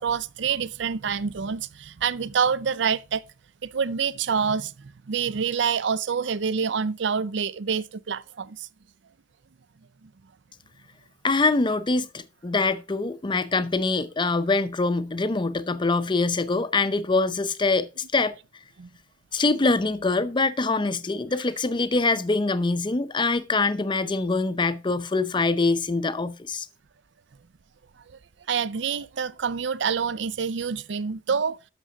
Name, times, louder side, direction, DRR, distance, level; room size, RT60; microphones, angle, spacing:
voice 1, 0.0-3.2 3.6-8.7 10.0-10.1 18.8-18.9 28.5-31.6, right 6 dB, 65° right, 0.5 m, -27 dB
voice 2, 11.2-18.3 19.3-26.7, left 3 dB, 25° left, 0.5 m, -24 dB
12.0 x 6.1 x 3.8 m
head